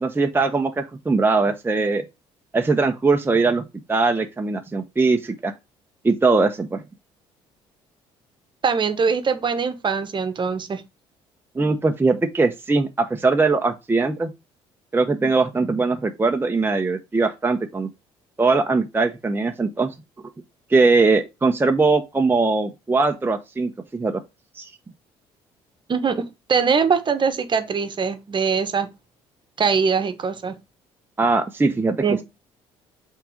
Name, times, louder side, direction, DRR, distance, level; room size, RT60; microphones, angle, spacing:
voice 1, 0.0-2.0 2.5-5.5 6.0-6.8 11.5-14.3 14.9-17.9 18.4-19.9 20.7-24.2 24.5-24.7 31.2-32.0, right 3 dB, 15° right, 0.9 m, -21 dB
voice 2, 8.6-10.8 25.9-28.9 29.6-30.6 32.0-32.2, right 5 dB, 40° right, 1.2 m, -22 dB
5.8 x 3.8 x 5.1 m
supercardioid pair, 70°, 12 cm